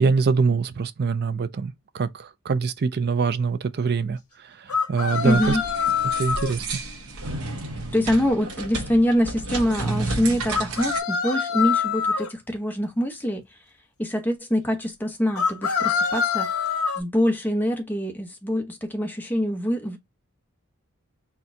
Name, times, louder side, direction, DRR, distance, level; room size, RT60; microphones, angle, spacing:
voice 1, 0.0-4.2 4.9-5.6 6.2-6.7, right 5 dB, 45° right, 0.5 m, -23 dB
sound 1, 4.7-6.5 10.5-12.3 15.4-17.0, left 6 dB, 70° left, 1.1 m, -25 dB
sound 2, 5.1-11.0, right 2 dB, 75° right, 0.9 m, -32 dB
voice 2, 5.2-5.6 7.9-13.4 14.0-16.5 17.0-20.0, equal, 10° left, 0.9 m, -24 dB
4.3 x 2.3 x 3.7 m
head